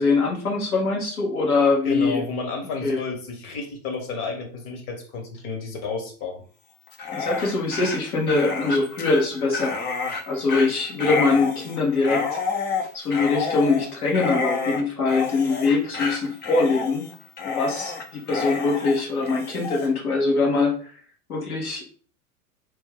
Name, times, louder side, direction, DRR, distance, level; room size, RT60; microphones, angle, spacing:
voice 1, 0.0-2.2 2.8-3.0 7.1-9.8 10.3-12.2 12.9-17.1 17.4-20.7 21.3-21.8, left 3 dB, 85° left, -1 dB, 1.4 m, -23 dB
voice 2, 1.8-6.4, left 4 dB, 50° left, 3 dB, 1.2 m, -31 dB
Dog, 6.9-19.9, left 4 dB, 25° left, 0.5 m, -29 dB
3.1 x 2.3 x 3.5 m, 0.43 s
hypercardioid pair, 95°, 43 cm